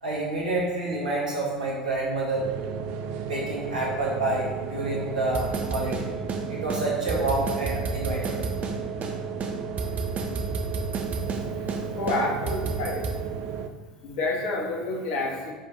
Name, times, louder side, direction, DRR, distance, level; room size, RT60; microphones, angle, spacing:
voice 1, 0.0-2.5 3.2-6.1 6.5-8.4, right 2 dB, 80° right, -4 dB, 2.0 m, -28 dB
sound 1, 2.3-13.7, right 6 dB, 55° right, 0.6 m, -34 dB
sound 2, 5.3-6.4 6.7-6.8 7.1-8.8 9.0-9.1 9.4-11.4 11.7-11.8 12.1-13.2, right 4 dB, 35° right, 1.1 m, -31 dB
voice 2, 11.1-13.0 14.0-15.5, left 2 dB, 60° left, 0 dB, 1.7 m, -30 dB
10.0 x 5.0 x 3.4 m, 1.4 s
figure-of-eight pair, 65°, 4 cm